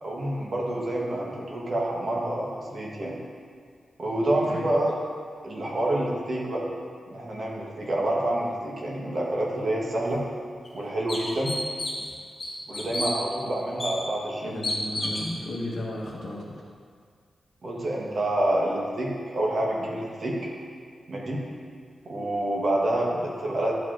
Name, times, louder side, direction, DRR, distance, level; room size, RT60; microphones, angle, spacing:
voice 1, 0.0-3.2 4.0-4.9 5.4-6.6 7.1-10.2 10.7-11.5 12.7-14.6 17.6-20.4 21.1-21.4 22.0-23.7, right 1 dB, 45° right, -3 dB, 1.1 m, -27 dB
sound 1, 10.0-10.1 10.7-10.8 11.1-12.1 12.4-13.1 13.8-13.9 14.6-15.3, left 2 dB, 35° left, 1.6 m, -30 dB
voice 2, 14.4-16.6, left 1 dB, 65° left, -3 dB, 1.2 m, -34 dB
11.0 x 4.8 x 2.5 m, 2.1 s
wide cardioid pair, 170°, 0 cm